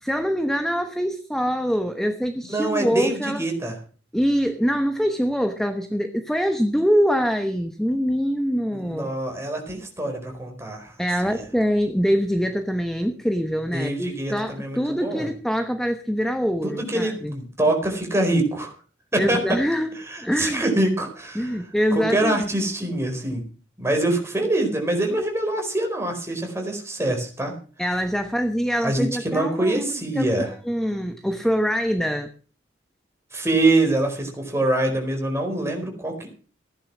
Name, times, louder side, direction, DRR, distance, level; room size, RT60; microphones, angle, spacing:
voice 1, 0.0-3.4 4.1-9.1 11.0-17.3 19.2-20.6 21.3-22.4 27.8-32.3, equal, ahead, 7 dB, 1.1 m, -24 dB
voice 2, 2.5-3.7 8.7-10.9 11.2-11.4 13.7-15.3 16.6-18.7 19.1-19.6 20.1-21.6 21.9-23.4 23.8-27.5 28.8-30.5 33.3-36.3, right 2 dB, 15° right, 2 dB, 4.5 m, -24 dB
16.5 x 10.0 x 6.2 m, 0.39 s
head